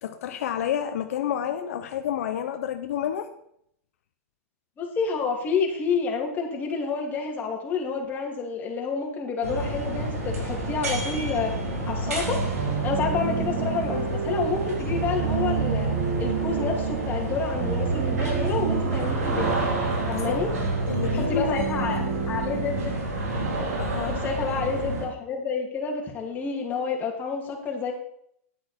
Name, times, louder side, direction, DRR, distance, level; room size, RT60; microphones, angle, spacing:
voice 1, 0.0-3.3 20.0-20.6 20.9-22.2 23.8-24.2, left 9 dB, 75° left, 7 dB, 0.9 m, -30 dB
voice 2, 4.8-11.5 11.8-12.4 12.8-15.9 16.2-19.5 20.1-20.5 21.1-23.0 24.1-27.9, left 5 dB, 20° left, 0 dB, 2.8 m, -29 dB
sound 1, 9.4-25.0, right 1 dB, 90° right, 3.8 m, -30 dB
sound 2, 12.2-23.9, right 7 dB, 70° right, 2.3 m, -30 dB
10.0 x 8.6 x 4.5 m, 0.70 s
supercardioid pair, 140°, 8 cm